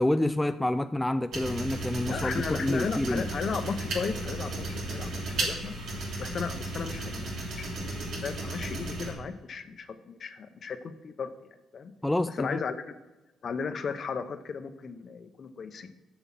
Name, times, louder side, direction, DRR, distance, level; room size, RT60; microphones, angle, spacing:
voice 1, 0.0-3.3 12.0-12.6, left 1 dB, 10° left, 0.3 m, -28 dB
sound 1, 1.3-9.1, right 2 dB, 75° right, 3.1 m, -34 dB
voice 2, 2.1-5.7 6.2-11.3 11.7-11.9 12.4-12.9 13.4-15.9, left 5 dB, 50° left, 0.8 m, -35 dB
7.3 x 7.1 x 5.9 m
cardioid pair, 90°, 0 cm